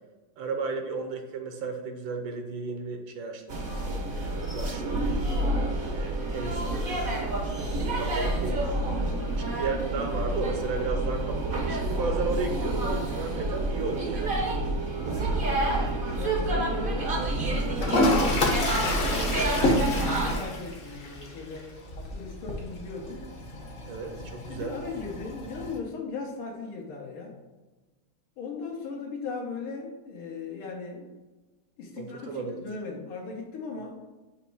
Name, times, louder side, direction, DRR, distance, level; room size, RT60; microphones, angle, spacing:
voice 1, 0.4-5.0 5.8-7.0 7.7-8.7 9.3-14.5 15.5-15.6 16.5-16.9 23.9-24.7 32.0-32.6, right 4 dB, 70° right, 5 dB, 1.4 m, -34 dB
sound 1, 3.5-20.3, right 1 dB, 50° right, 0.6 m, -28 dB
voice 2, 9.0-9.5 15.1-15.4 16.2-21.7 22.0-23.3 24.5-27.4 28.4-31.1 31.8-34.0, left 4 dB, 85° left, -2 dB, 1.9 m, -38 dB
Toilet flush, 17.8-25.8, left 1 dB, 45° left, 0.7 m, -29 dB
6.7 x 3.0 x 4.7 m, 1.2 s
omnidirectional pair, 2.3 m